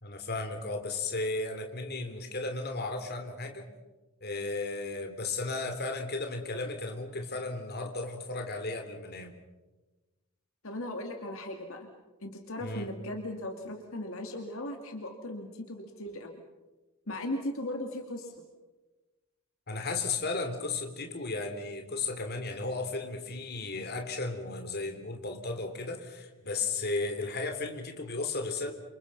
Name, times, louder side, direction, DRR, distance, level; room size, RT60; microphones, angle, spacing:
voice 1, 0.0-3.7 4.2-9.3 12.6-12.9 19.7-28.7, left 3 dB, 45° left, 5 dB, 3.3 m, -34 dB
voice 2, 10.6-11.9 12.2-16.3 17.1-18.4, left 1 dB, 65° left, 3 dB, 2.7 m, -37 dB
30.0 x 27.5 x 5.6 m, 1.1 s
head